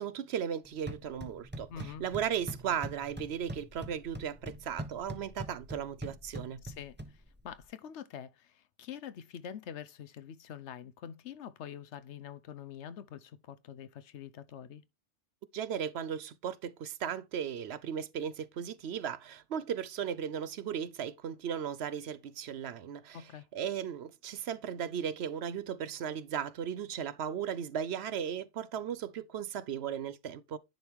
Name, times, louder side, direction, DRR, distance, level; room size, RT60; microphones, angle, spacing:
voice 1, 0.0-6.6 15.5-30.6, right 8 dB, 65° right, 0.9 m, -36 dB
sound 1, 0.7-7.6, right 1 dB, 10° right, 0.9 m, -44 dB
voice 2, 1.7-2.0 6.6-14.8 23.1-23.4, left 9 dB, 75° left, 1.0 m, -45 dB
10.5 x 4.6 x 3.5 m
omnidirectional pair, 1.2 m